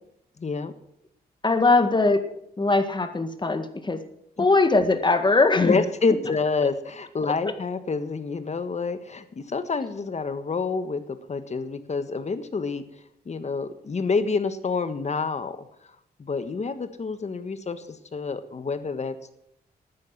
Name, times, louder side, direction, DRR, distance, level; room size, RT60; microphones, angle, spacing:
voice 1, 0.4-0.7 4.4-4.5 5.6-12.8 13.2-15.7 16.2-19.4, left 4 dB, 45° left, 11 dB, 1.5 m, -28 dB
voice 2, 1.4-2.2 2.6-4.0 4.4-5.8, left 3 dB, 25° left, 9 dB, 1.8 m, -21 dB
13.0 x 9.6 x 7.4 m, 0.73 s
cardioid pair, 70°, 17 cm